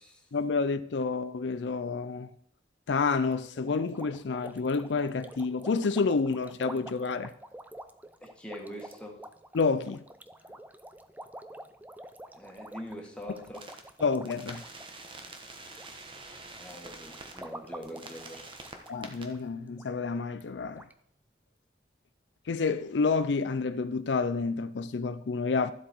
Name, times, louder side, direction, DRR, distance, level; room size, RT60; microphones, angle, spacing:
voice 1, 0.3-2.3 2.9-7.3 9.5-10.0 14.0-14.6 18.9-20.9 22.5-25.7, left 4 dB, 85° left, 0.5 m, -29 dB
sound 1, 3.1-15.9 16.2-16.6 17.1-19.0 19.3-19.4 19.8-19.9 20.4-20.5 20.8-20.9, right 1 dB, 10° right, 0.5 m, -48 dB
voice 2, 8.2-9.2 12.4-13.6 16.6-18.5, equal, 5° left, 2.0 m, -43 dB
sound 2, 13.5-13.8 14.2-17.4 17.8-19.2, right 3 dB, 30° right, 1.3 m, -46 dB
12.5 x 7.9 x 4.6 m
head